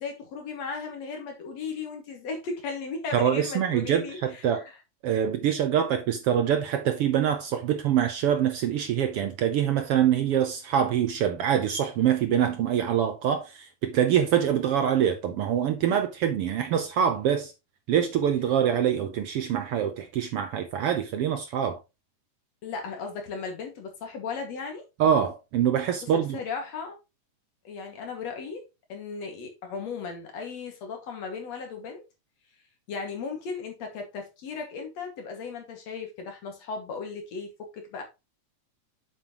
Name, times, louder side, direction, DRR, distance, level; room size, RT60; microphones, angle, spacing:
voice 1, 0.0-4.6 22.6-24.8 26.1-27.0 27.6-28.6 28.9-32.0 32.9-38.0, left 5 dB, 65° left, 3.1 m, -36 dB
voice 2, 3.1-4.6 5.0-17.5 17.9-21.8 25.0-26.4, right 9 dB, 70° right, 1.4 m, -25 dB
7.7 x 7.4 x 3.0 m
omnidirectional pair, 3.3 m